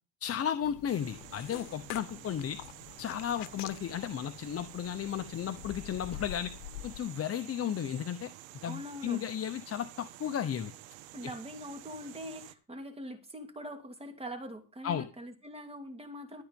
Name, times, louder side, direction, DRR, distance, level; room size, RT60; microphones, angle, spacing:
voice 1, 0.2-2.6 3.0-6.5 6.8-8.3 8.6-10.7 14.8-15.1, left 9 dB, 30° left, 9 dB, 0.9 m, -34 dB
sound 1, 0.6-7.0, left 14 dB, 85° left, 1.1 m, -47 dB
sound 2, 0.9-12.5, right 15 dB, 90° right, 1.5 m, -50 dB
voice 2, 8.6-9.2 11.1-16.4, equal, 15° right, 5 dB, 2.5 m, -43 dB
13.5 x 8.8 x 5.3 m, 0.32 s
cardioid pair, 135°, 43 cm